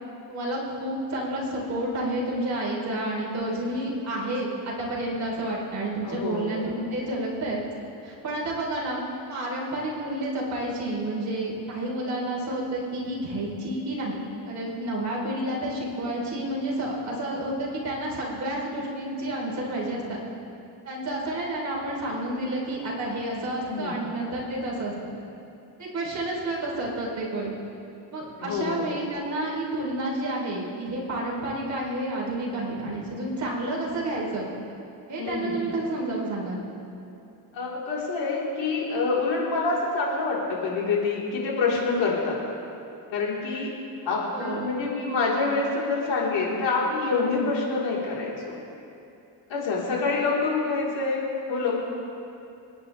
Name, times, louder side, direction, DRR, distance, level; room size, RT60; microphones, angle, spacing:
voice 1, 0.3-7.6 8.0-20.2 20.9-24.9 25.8-27.5 28.1-34.5 35.1-36.6 44.3-44.7, right 1 dB, 35° right, -4 dB, 4.0 m, -30 dB
voice 2, 6.0-6.8 23.6-24.0 28.4-28.9 35.2-35.6 37.5-42.4 43.1-43.7 44.0-48.5 49.5-51.7, left 4 dB, 70° left, -5 dB, 4.3 m, -26 dB
28.5 x 9.8 x 3.5 m, 2.7 s
cardioid pair, 130°, 47 cm